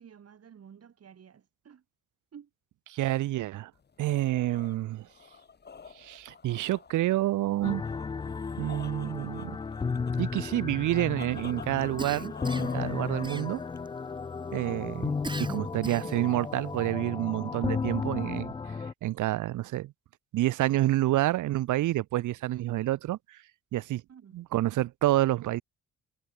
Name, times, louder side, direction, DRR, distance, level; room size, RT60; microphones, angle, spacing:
voice 1, 0.0-1.8 2.3-2.5 24.1-24.4, right 8 dB, 55° right, 7.1 m, -52 dB
voice 2, 2.9-3.7 4.0-5.1 6.0-7.8 8.6-9.6 10.2-13.6 14.5-15.1 15.5-18.5 19.0-19.9 20.3-23.4 23.7-24.0 24.3-25.6, right 15 dB, 80° right, 1.1 m, -28 dB
sound 1, 3.8-14.1, left 5 dB, 35° left, 2.1 m, -48 dB
sound 2, 7.6-18.9, left 5 dB, 15° left, 0.4 m, -34 dB
Cough, 12.0-12.8 13.2-13.9 15.2-16.3, right 2 dB, 15° right, 4.2 m, -39 dB
cardioid pair, 90°, 30 cm